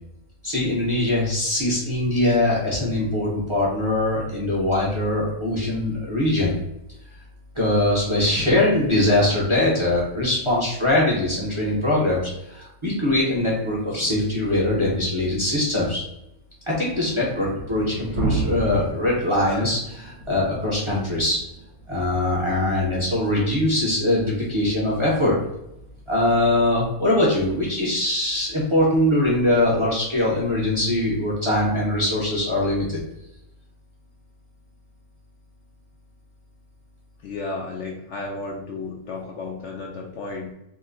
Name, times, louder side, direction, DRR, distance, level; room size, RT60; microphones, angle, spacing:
voice 1, 0.4-6.5 7.5-16.0 16.7-21.4 21.9-25.4 26.1-33.0, left 1 dB, 25° right, -5 dB, 0.7 m, -22 dB
sound 1, 13.6-13.7 13.9-14.4 14.8-16.4 17.0-17.1 17.4-19.7, equal, 20° left, 0.6 m, -39 dB
sound 2, 16.9-29.9 30.9-31.0 31.7-31.8 32.1-32.2, right 3 dB, 70° right, 1.0 m, -35 dB
voice 2, 37.2-40.5, left 3 dB, 65° left, -1 dB, 0.7 m, -33 dB
2.9 x 2.1 x 3.7 m, 0.85 s
omnidirectional pair, 1.5 m